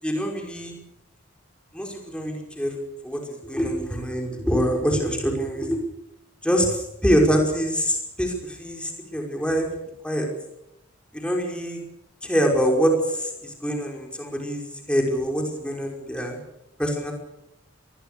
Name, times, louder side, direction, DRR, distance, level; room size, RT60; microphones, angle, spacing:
voice 1, 0.0-0.7 1.7-2.7 3.0-5.8 6.4-9.7 10.0-10.3 11.1-11.8 12.2-16.4 16.8-17.1, equal, 5° left, 1 dB, 5.4 m, -25 dB
26.0 x 21.5 x 6.9 m, 0.84 s
head